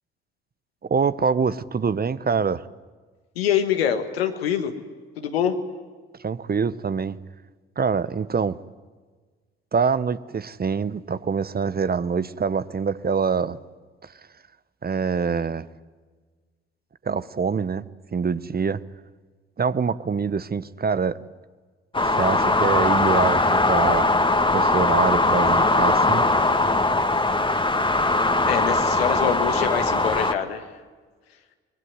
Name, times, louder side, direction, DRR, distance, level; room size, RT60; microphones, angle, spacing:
voice 1, 0.8-2.6 6.2-7.2 7.8-8.6 9.7-13.6 14.0-14.1 14.8-15.7 17.0-17.8 18.1-18.8 19.6-21.2 22.0-24.1 24.5-26.2, right 5 dB, 30° right, 16 dB, 1.0 m, -25 dB
voice 2, 3.3-4.7 5.2-5.6 28.4-30.6, left 9 dB, 90° left, 7 dB, 1.5 m, -25 dB
sound 1, 21.9-30.3, left 2 dB, 15° left, 2.0 m, -20 dB
24.0 x 20.5 x 9.7 m, 1.4 s
hypercardioid pair, 45°, 30 cm